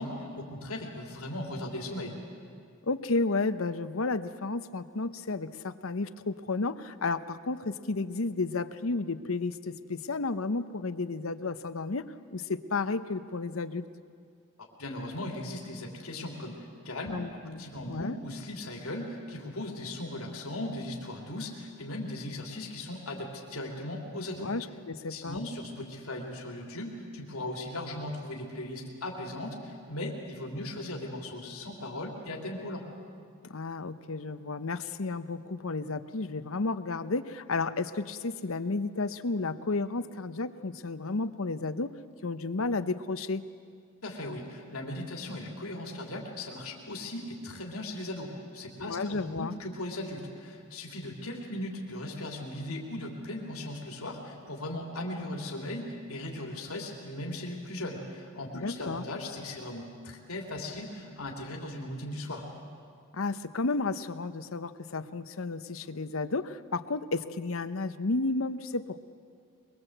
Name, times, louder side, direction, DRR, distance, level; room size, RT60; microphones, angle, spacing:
voice 1, 0.0-2.2 14.8-17.1 17.5-24.5 25.1-32.9 44.0-62.5, left 1 dB, 90° left, 0 dB, 3.1 m, -38 dB
voice 2, 2.8-13.9 17.1-18.2 24.4-25.4 33.5-41.9 42.2-43.4 48.9-49.5 58.5-59.0 63.1-69.0, left 3 dB, 70° left, 12 dB, 0.8 m, -32 dB
23.5 x 23.0 x 7.9 m, 2.3 s
head